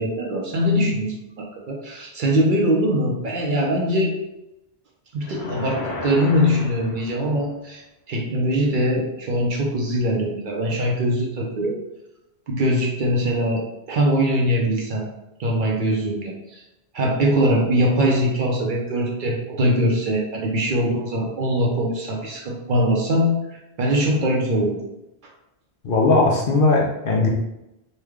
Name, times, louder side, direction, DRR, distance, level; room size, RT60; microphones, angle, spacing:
voice 1, 0.0-4.2 5.1-7.8 8.1-11.7 12.5-15.0 15.4-16.6 16.9-24.8, equal, 60° right, -1 dB, 0.7 m, -22 dB
sound 1, 5.2-7.5, left 2 dB, 90° left, 1.0 m, -33 dB
voice 2, 25.8-27.3, left 3 dB, 60° left, -1 dB, 0.8 m, -18 dB
3.3 x 2.2 x 3.4 m, 0.91 s
omnidirectional pair, 1.1 m